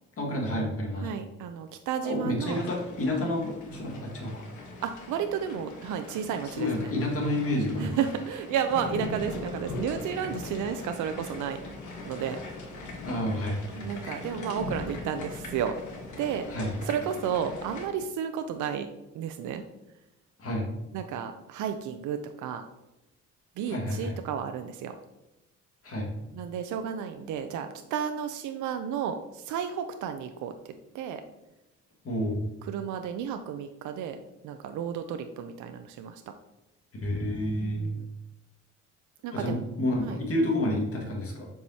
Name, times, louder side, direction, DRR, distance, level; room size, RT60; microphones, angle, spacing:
voice 1, 0.2-1.1 2.0-4.4 6.4-7.9 9.0-9.1 13.0-13.6 14.0-14.2 16.5-16.7 20.4-20.7 23.7-24.1 25.8-26.1 32.0-32.4 37.0-37.9 39.3-41.5, left 1 dB, 50° left, -1 dB, 1.8 m, -29 dB
voice 2, 1.0-2.6 4.8-6.9 7.8-11.6 12.1-12.4 13.8-15.8 16.2-16.5 16.8-18.9 19.1-19.6 20.9-22.7 23.6-25.0 26.3-31.2 32.7-36.2 37.6-38.1 39.2-39.7 40.1-40.2, right 8 dB, 75° right, 7 dB, 0.5 m, -32 dB
sound 1, 2.5-17.9, left 2 dB, 75° left, 1.3 m, -40 dB
7.1 x 4.8 x 2.8 m, 0.96 s
cardioid pair, 90°, 30 cm